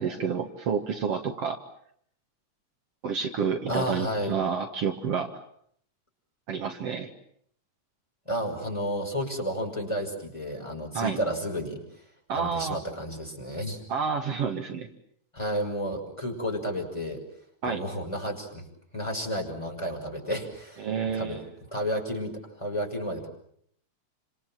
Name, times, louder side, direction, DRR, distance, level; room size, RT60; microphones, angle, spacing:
voice 1, 0.0-1.6 3.0-5.3 6.5-7.1 10.9-11.2 12.3-12.8 13.9-14.9 17.6-17.8 20.8-21.5, right 6 dB, 60° right, 4 dB, 2.5 m, -29 dB
voice 2, 3.7-4.4 8.3-11.8 12.3-13.8 15.3-17.2 17.6-18.6 18.9-20.9 21.1-21.4 21.7-23.3, equal, 10° left, 2 dB, 6.1 m, -31 dB
29.5 x 26.5 x 7.5 m, 0.68 s
omnidirectional pair, 3.3 m